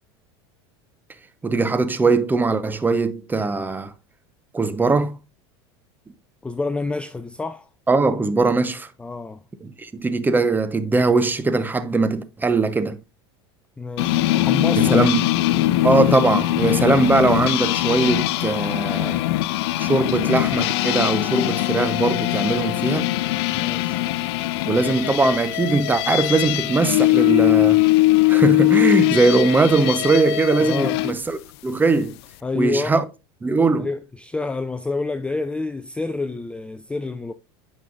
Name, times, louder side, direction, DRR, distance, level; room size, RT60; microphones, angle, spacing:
voice 1, 1.4-3.9 4.5-5.2 7.9-8.9 9.6-13.0 14.8-15.2 15.8-19.2 19.8-23.1 24.7-27.8 28.3-32.1 32.6-33.0 33.4-33.9, right 3 dB, 15° right, 0.8 m, -20 dB
voice 2, 6.4-7.7 9.0-9.4 13.8-15.1 23.5-24.1 30.6-31.0 32.4-33.0 33.8-37.3, left 3 dB, 10° left, 0.4 m, -28 dB
sound 1, 14.0-31.1, left 17 dB, 70° left, 0.4 m, -21 dB
9.4 x 5.3 x 2.5 m
supercardioid pair, 105°, 14 cm